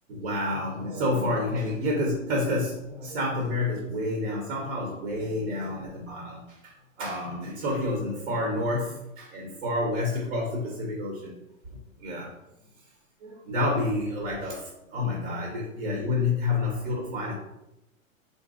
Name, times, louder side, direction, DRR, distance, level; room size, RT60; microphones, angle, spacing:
voice 1, 0.1-6.7 7.0-11.4 12.0-12.3 13.2-17.3, left 2 dB, 50° right, -1 dB, 1.2 m, -29 dB
4.3 x 4.0 x 2.5 m, 0.88 s
figure-of-eight pair, 105°, 41 cm